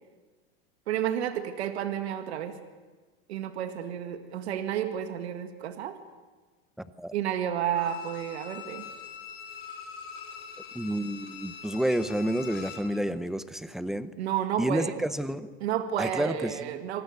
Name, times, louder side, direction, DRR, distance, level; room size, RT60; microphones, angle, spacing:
voice 1, 0.9-2.5 3.3-6.0 7.1-8.8 14.2-15.0 15.6-17.0, right 10 dB, 90° right, 8 dB, 1.9 m, -31 dB
voice 2, 6.8-7.1 10.7-14.1 14.6-15.5 16.0-16.8, equal, ahead, 13 dB, 0.6 m, -30 dB
Bowed string instrument, 7.7-12.9 13.3-13.4, left 7 dB, 35° left, 5.2 m, -43 dB
27.0 x 18.5 x 8.2 m, 1.3 s
supercardioid pair, 150°, 32 cm